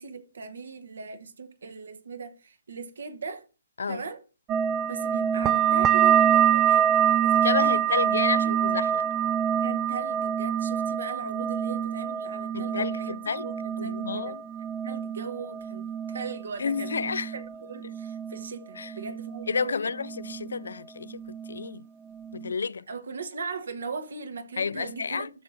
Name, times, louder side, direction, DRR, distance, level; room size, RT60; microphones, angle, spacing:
voice 1, 0.0-3.5 3.9-4.2 4.9-7.9 8.4-8.6 9.6-14.4 14.8-17.0 17.3-19.9 20.3-20.6 22.9-25.3, right 5 dB, 70° right, 1.2 m, -39 dB
sound 1, 4.5-19.7 19.9-20.7 21.0-21.7 22.1-22.5, right 9 dB, 20° right, 0.4 m, -26 dB
voice 2, 7.4-9.1 12.5-13.5 13.8-14.4 16.6-17.3 18.8-18.9 19.5-21.8 22.3-22.9 24.6-25.3, left 5 dB, 75° left, 0.3 m, -31 dB
13.0 x 5.7 x 2.6 m
hypercardioid pair, 140°, 0 cm